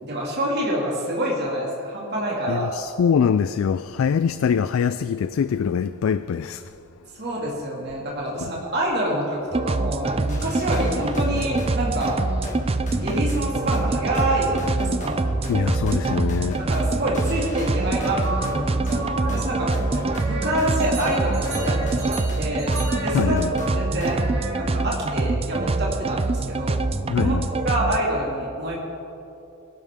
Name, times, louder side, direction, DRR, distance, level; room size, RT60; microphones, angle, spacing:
voice 1, 0.0-2.7 7.2-12.2 13.0-15.2 16.7-19.7 20.2-22.7 23.0-23.4 23.7-24.2 24.6-26.8 27.2-27.3 27.6-28.8, right 1 dB, 50° right, 2.3 m, -27 dB
voice 2, 2.5-6.7 8.4-8.5 15.5-16.6 23.1-23.5 27.1-27.5, left 7 dB, 65° left, 0.3 m, -23 dB
sound 1, 9.5-28.0, right 3 dB, 25° right, 0.4 m, -25 dB
sound 2, 10.3-24.4, equal, 35° left, 1.8 m, -35 dB
sound 3, 18.0-24.6, right 2 dB, 70° right, 3.9 m, -34 dB
21.0 x 12.0 x 3.7 m
head